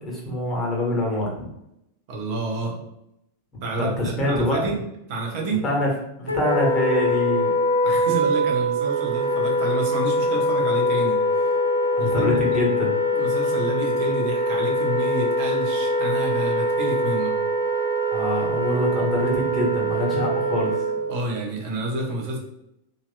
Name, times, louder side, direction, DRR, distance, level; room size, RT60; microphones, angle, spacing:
voice 1, 0.0-1.4 3.7-4.7 5.6-5.9 6.2-7.5 12.0-12.9 18.1-20.8, left 1 dB, 20° left, -2 dB, 1.3 m, -25 dB
voice 2, 2.1-2.8 3.6-4.8 5.1-5.6 7.8-11.2 12.0-12.6 13.1-17.3 21.1-22.4, right 1 dB, 45° right, -1 dB, 1.0 m, -29 dB
Wind instrument woodwind instrument, 6.3-21.2, equal, 85° left, 0.4 m, -23 dB
3.7 x 2.8 x 2.2 m, 0.81 s
figure-of-eight pair, 90°, 0 cm